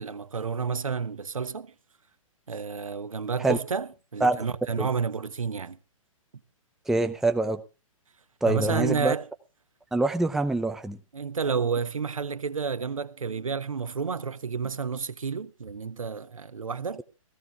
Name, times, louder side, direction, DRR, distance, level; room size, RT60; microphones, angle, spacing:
voice 1, 0.0-1.7 2.5-5.8 8.5-9.3 11.1-17.0, right 5 dB, 70° right, 1.2 m, -30 dB
voice 2, 6.9-7.6 8.4-9.1 9.9-11.0, right 2 dB, ahead, 0.6 m, -25 dB
17.0 x 15.0 x 3.6 m
figure-of-eight pair, 120°, 18 cm